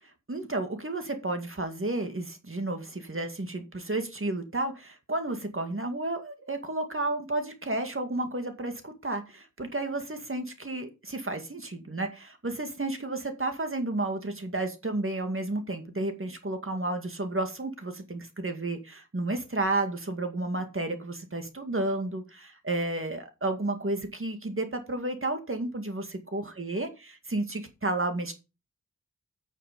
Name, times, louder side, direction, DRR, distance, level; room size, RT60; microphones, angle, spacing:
voice 1, 0.3-28.3, right 2 dB, 40° right, 6 dB, 2.1 m, -32 dB
9.8 x 6.5 x 5.2 m, 0.29 s
wide cardioid pair, 60°, 31 cm